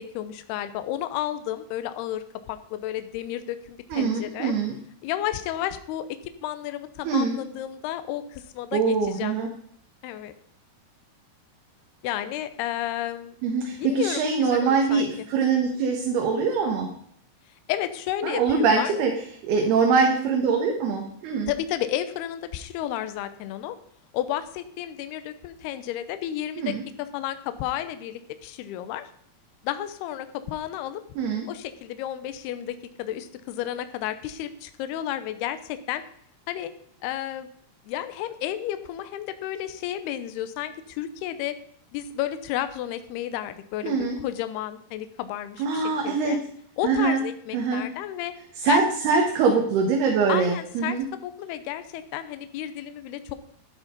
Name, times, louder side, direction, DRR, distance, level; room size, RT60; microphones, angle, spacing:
voice 1, 0.0-4.5 5.0-6.1 6.4-9.3 10.0-10.3 12.0-13.4 13.8-15.1 17.7-19.0 19.6-19.7 21.5-23.8 24.1-26.7 27.1-29.1 29.6-31.0 31.5-36.0 36.5-36.7 37.0-37.5 37.9-41.5 41.9-46.4 46.8-48.3 48.7-48.8 50.3-51.0 51.2-53.4, left 12 dB, 75° left, 11 dB, 2.7 m, -32 dB
voice 2, 3.9-4.8 7.0-7.4 8.7-9.5 13.4-16.9 18.2-19.1 19.4-21.5 26.6-26.8 31.2-31.5 43.8-44.2 45.6-46.4 46.8-47.2 47.5-47.8 48.6-51.0, right 5 dB, 70° right, 2 dB, 3.3 m, -23 dB
11.5 x 10.0 x 5.2 m, 0.66 s
omnidirectional pair, 4.9 m